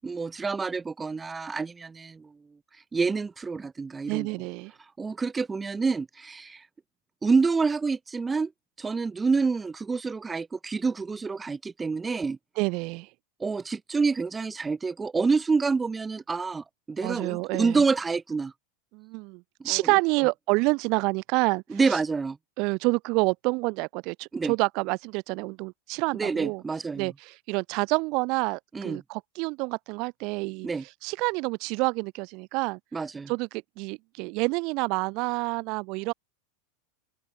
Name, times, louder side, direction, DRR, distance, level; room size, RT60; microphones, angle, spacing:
voice 1, 0.0-2.4 2.7-4.3 4.8-6.7 7.2-8.5 8.8-12.4 13.4-18.5 19.6-20.0 21.7-22.4 24.3-24.5 26.1-27.1 28.7-29.0 30.6-30.8 32.9-33.3, right 4 dB, 15° right, 0.8 m, -28 dB
voice 2, 4.1-4.7 12.6-13.1 17.0-17.8 18.9-22.0 22.6-26.6 26.9-30.7 31.0-32.8 33.3-33.5 33.8-36.1, right 27 dB, 55° right, 1.4 m, -28 dB
open air
hypercardioid pair, 115°, 0 cm